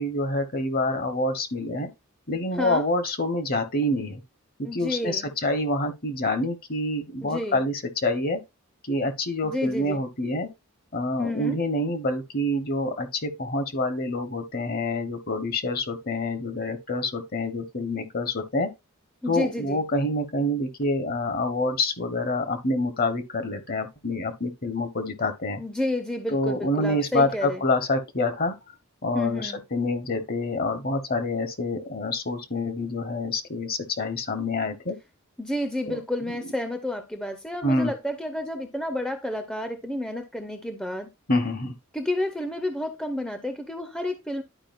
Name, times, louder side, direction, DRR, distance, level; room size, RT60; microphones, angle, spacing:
voice 1, 0.0-1.9 2.3-4.2 4.6-8.4 8.8-10.5 10.9-18.7 19.3-25.6 26.3-28.5 29.0-35.0 35.9-36.0 36.3-36.4 37.6-37.9 41.3-41.7, left 2 dB, 45° left, 1.1 m, -27 dB
voice 2, 4.6-5.3 7.2-7.6 9.4-10.0 11.2-11.6 19.2-19.8 25.6-27.6 29.1-29.6 35.4-41.1 41.9-44.4, left 1 dB, 5° left, 0.7 m, -30 dB
11.5 x 4.9 x 2.5 m
head